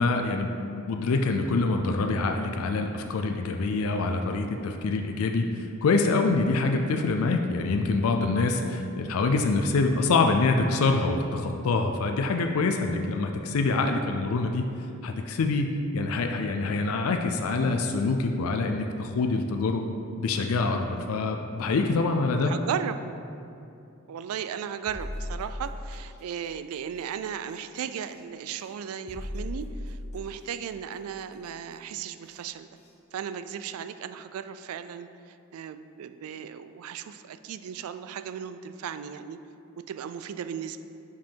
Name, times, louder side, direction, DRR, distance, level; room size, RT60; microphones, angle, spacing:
voice 1, 0.0-14.7 15.0-19.9 20.2-22.5, left 3 dB, 80° left, 4 dB, 0.4 m, -25 dB
voice 2, 22.4-23.0 24.1-32.7 33.1-39.4 39.9-40.8, right 8 dB, 85° right, 11 dB, 0.3 m, -36 dB
sound 1, 24.9-26.2 28.0-28.1 29.1-30.4 32.2-32.3 32.8-32.9, left 1 dB, 35° left, 1.0 m, -36 dB
5.5 x 5.1 x 4.5 m, 2.6 s
head